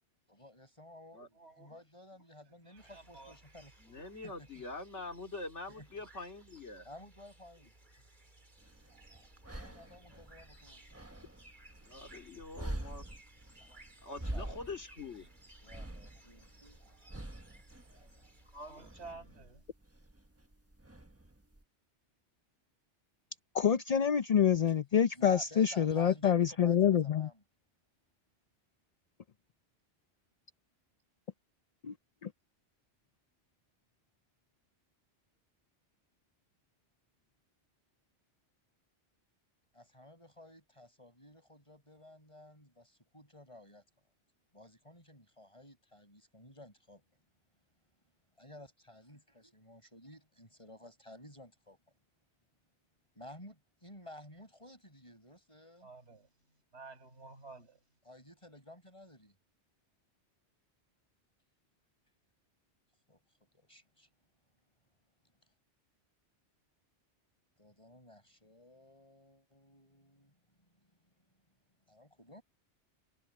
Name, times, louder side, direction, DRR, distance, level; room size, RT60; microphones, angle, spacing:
voice 1, 0.3-3.7 4.2-4.6 5.7-5.9 6.8-7.7 9.5-11.1 13.6-13.8 14.3-14.5 15.1-15.3 15.6-16.8 25.1-27.4 39.7-43.8 44.5-47.0 48.4-51.8 53.1-55.9 58.1-59.4 63.1-64.1 67.6-71.6 71.9-72.4, left 1 dB, 25° left, 7.6 m, -54 dB
voice 2, 1.3-1.8 2.6-3.4 3.9-4.1 18.4-19.6 55.8-57.9, right 3 dB, 70° right, 7.5 m, -52 dB
sound 1, 2.8-19.1, right 2 dB, 40° right, 3.5 m, -60 dB
voice 3, 3.8-6.9 11.8-13.1 14.0-15.3, left 3 dB, 85° left, 3.3 m, -44 dB
sound 2, 8.6-21.6, right 1 dB, 15° right, 1.1 m, -46 dB
voice 4, 23.5-27.3 31.8-31.9 32.2-32.3, left 8 dB, 45° left, 0.5 m, -27 dB
omnidirectional pair, 1.2 m